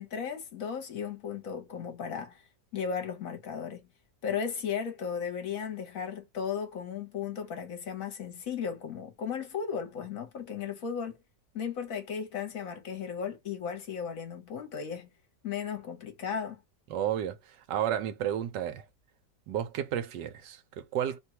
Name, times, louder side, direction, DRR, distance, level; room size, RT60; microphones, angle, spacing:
voice 1, 0.0-2.4 2.7-3.9 4.2-11.2 11.5-15.1 15.4-16.6, left 7 dB, 60° left, 1.2 m, -35 dB
voice 2, 16.9-18.8 19.5-21.2, right 10 dB, 85° right, 1.3 m, -32 dB
3.1 x 2.3 x 2.7 m
omnidirectional pair, 1.8 m